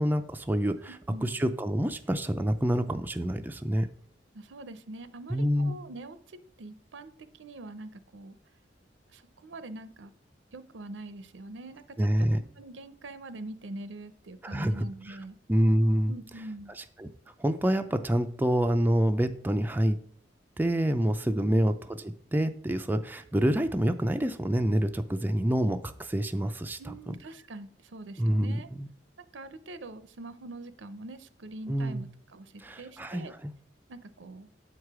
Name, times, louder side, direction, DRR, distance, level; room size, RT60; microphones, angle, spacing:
voice 1, 0.0-1.0 1.2-3.9 5.3-5.8 12.0-12.4 14.4-15.2 15.5-16.1 16.8-17.1 17.4-20.0 20.6-27.1 28.2-28.9 31.7-32.0 32.6-33.5, equal, 10° right, 7 dB, 0.4 m, -27 dB
voice 2, 4.3-8.4 9.1-10.1 10.5-11.8 12.2-15.3 16.1-16.7 26.8-28.7 29.3-33.3 33.9-34.5, right 2 dB, 85° right, 13 dB, 0.6 m, -44 dB
8.2 x 4.7 x 4.8 m, 0.62 s
head